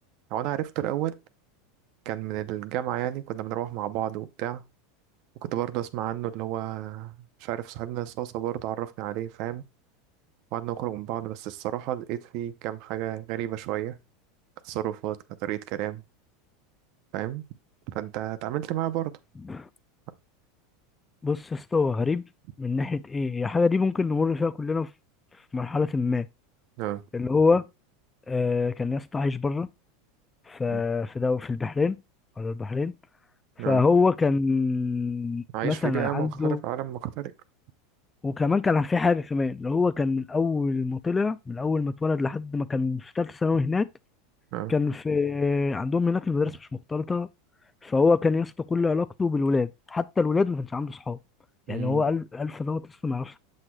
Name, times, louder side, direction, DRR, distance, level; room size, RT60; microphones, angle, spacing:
voice 1, 0.3-1.2 2.1-4.6 5.4-9.6 10.5-14.0 14.6-16.0 17.1-17.4 17.9-19.1 26.8-27.0 30.7-30.8 33.6-33.8 35.5-37.3 44.5-44.7 51.7-52.0, right 13 dB, 55° right, 0.6 m, -31 dB
voice 2, 21.2-22.2 22.6-24.9 25.5-26.3 27.1-27.6 28.3-29.7 30.5-32.0 32.4-32.9 33.7-36.6 38.2-43.9 44.7-47.3 47.8-51.2 51.7-53.4, left 4 dB, 15° left, 0.3 m, -25 dB
7.3 x 6.3 x 2.3 m
supercardioid pair, 120°, 0 cm